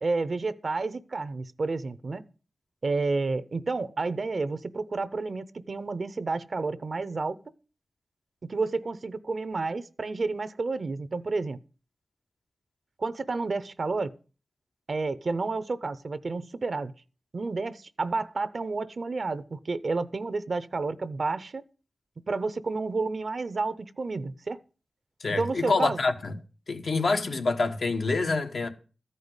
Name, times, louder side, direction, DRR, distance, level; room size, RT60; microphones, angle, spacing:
voice 1, 0.0-2.2 2.8-7.4 8.4-11.6 13.0-14.1 14.9-16.9 17.3-21.6 22.3-24.6 25.4-26.0, right 3 dB, 60° right, 0.6 m, -30 dB
voice 2, 25.2-26.3 26.7-28.7, left 3 dB, 80° left, 1.4 m, -26 dB
13.5 x 5.5 x 8.0 m
wide cardioid pair, 90°, 0 cm